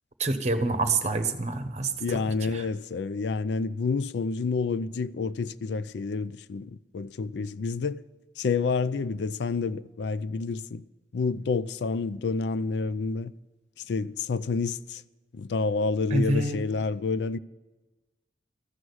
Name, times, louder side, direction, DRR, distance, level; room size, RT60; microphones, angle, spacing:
voice 1, 0.2-2.2 16.1-16.6, right 3 dB, 40° right, 1.0 m, -26 dB
voice 2, 2.0-8.0 8.4-10.8 11.1-13.3 13.9-15.0 15.3-17.4, left 4 dB, 70° left, 0.4 m, -29 dB
14.5 x 6.3 x 9.6 m
head